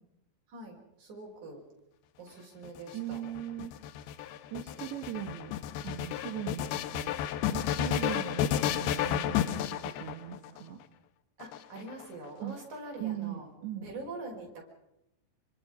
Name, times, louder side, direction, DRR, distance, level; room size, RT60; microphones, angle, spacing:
voice 1, 0.5-1.6 2.2-3.2 11.4-13.5 13.8-14.5, right 2 dB, 40° right, -1 dB, 7.0 m, -44 dB
sound 1, 2.7-10.6 11.4-12.3, left 10 dB, 75° left, 2.6 m, -32 dB
voice 2, 2.9-3.7 4.5-5.6 5.8-10.8 12.4-12.5 13.0-13.9, right 11 dB, 75° right, 2 dB, 4.0 m, -39 dB
27.0 x 25.0 x 5.3 m, 0.85 s
omnidirectional pair, 5.2 m